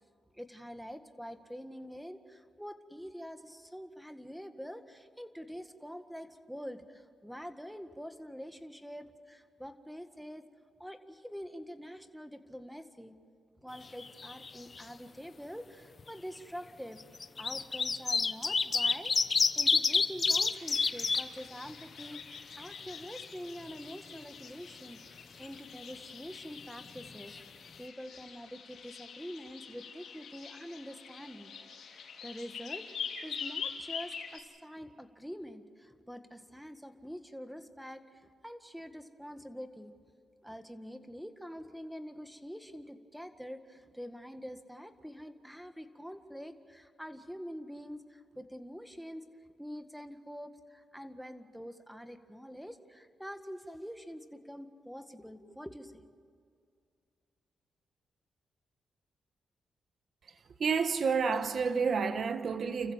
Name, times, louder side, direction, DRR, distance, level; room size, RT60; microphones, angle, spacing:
voice 1, 0.3-10.4 10.8-13.2 13.6-17.0 17.4-31.5 31.8-32.8 33.2-39.9 40.4-49.2 49.6-56.1, equal, ahead, 1.8 m, -46 dB
sound 1, 13.8-14.5 14.8-14.9 16.0-16.1 17.0-21.2 21.7-21.8 22.1-23.1 27.0-27.1 27.3-27.4, left 4 dB, 40° left, 1.0 m, -28 dB
sound 2, 20.5-34.4, left 6 dB, 75° left, 2.9 m, -45 dB
voice 2, 60.6-62.9, right 5 dB, 60° right, 1.2 m, -29 dB
30.0 x 15.0 x 7.5 m
cardioid pair, 80°, 0 cm